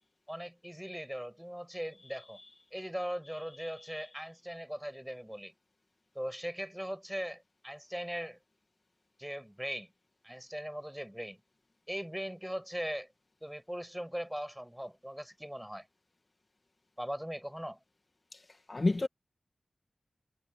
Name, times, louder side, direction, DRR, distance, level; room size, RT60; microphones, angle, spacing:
voice 1, 0.3-2.4 2.7-5.5 6.1-8.4 9.2-9.9 10.2-11.4 11.9-13.1 13.4-15.9 17.0-17.8, equal, 5° right, 7.9 m, -39 dB
voice 2, 18.7-19.1, left 2 dB, 45° left, 1.6 m, -29 dB
cardioid pair, 45°, 0 cm